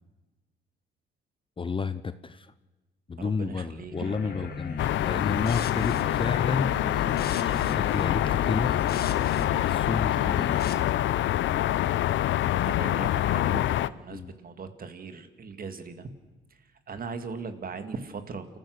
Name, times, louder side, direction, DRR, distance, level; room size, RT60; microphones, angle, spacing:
voice 1, 1.6-2.5 3.1-6.7 7.4-8.7 9.5-10.6 14.1-14.3, left 5 dB, 25° left, 13 dB, 0.7 m, -31 dB
voice 2, 3.2-4.5 4.8-4.9 12.7-16.1 16.9-18.5, right 5 dB, 45° right, 8 dB, 2.1 m, -39 dB
sound 1, 3.9-10.7, left 5 dB, 50° left, 1.8 m, -36 dB
sound 2, 4.8-13.9, left 13 dB, 75° left, 0.6 m, -26 dB
28.5 x 15.0 x 6.5 m, 1.2 s
cardioid pair, 90°, 20 cm